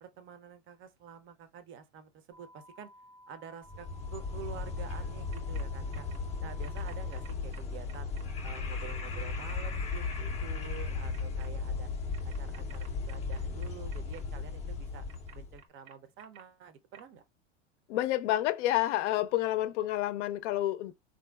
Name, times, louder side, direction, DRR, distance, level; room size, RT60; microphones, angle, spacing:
voice 1, 0.0-2.9 3.3-6.1 6.4-8.1 8.4-11.9 12.2-15.0 15.3-17.2, right 7 dB, 35° right, 0.5 m, -48 dB
sound 1, 2.3-7.3, equal, 90° right, 1.4 m, -56 dB
sound 2, 3.7-15.6, left 4 dB, 20° left, 0.4 m, -36 dB
sound 3, 5.3-5.6 5.9-6.2 6.6-8.2 8.7-9.1 9.5-10.2 11.1-11.5 12.1-14.2 15.1-16.4 16.9-17.0, right 8 dB, 60° right, 0.8 m, -54 dB
voice 2, 17.9-20.9, left 14 dB, 70° left, 0.5 m, -29 dB
3.4 x 2.6 x 2.2 m
hypercardioid pair, 110°, 38 cm